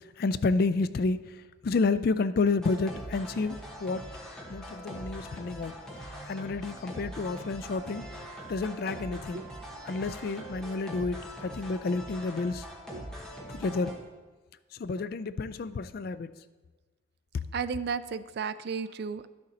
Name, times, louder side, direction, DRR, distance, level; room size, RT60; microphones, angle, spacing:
voice 1, 0.0-4.1 4.5-5.7 6.2-8.0 8.5-9.4 9.9-12.7 13.5-13.9 14.7-16.3, left 3 dB, 50° left, 14 dB, 0.3 m, -30 dB
sound 1, 2.6-14.0, equal, 5° left, 1.1 m, -42 dB
voice 2, 9.1-9.5 12.9-13.1 17.5-19.3, right 6 dB, 50° right, 14 dB, 0.3 m, -34 dB
11.0 x 6.5 x 4.2 m, 1.3 s
head